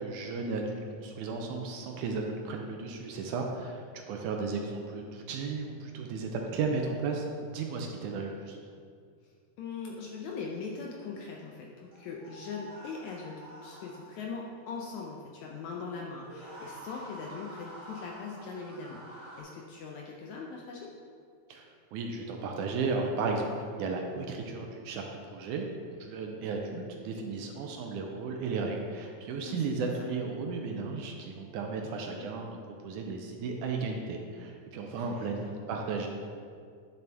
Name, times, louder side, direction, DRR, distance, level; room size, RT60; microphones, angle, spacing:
voice 1, 0.0-7.3 7.5-8.6 21.5-36.1, right 4 dB, 75° right, 2 dB, 1.9 m, -34 dB
voice 2, 9.2-20.9 29.4-30.1 31.8-32.3 34.9-35.5, left 4 dB, 75° left, -1 dB, 1.7 m, -41 dB
sound 1, 11.9-14.3 16.2-19.4, equal, 25° right, 1.7 m, -47 dB
10.0 x 6.8 x 3.5 m, 2.2 s
omnidirectional pair, 3.9 m